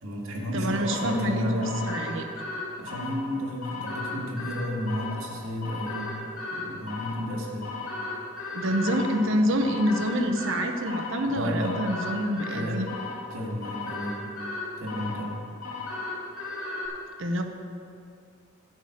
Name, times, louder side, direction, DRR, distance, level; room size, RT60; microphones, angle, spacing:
voice 1, 0.0-1.8 2.8-6.2 6.5-7.7 11.3-11.8 12.5-12.9 13.3-14.2 14.8-15.4, equal, 90° right, -2 dB, 1.9 m, -32 dB
voice 2, 0.5-2.2 8.5-12.9 17.2-17.4, equal, 65° right, 5 dB, 0.9 m, -27 dB
sound 1, 0.9-16.9, left 3 dB, 80° left, 2.4 m, -36 dB
11.0 x 5.0 x 8.3 m, 2.4 s
head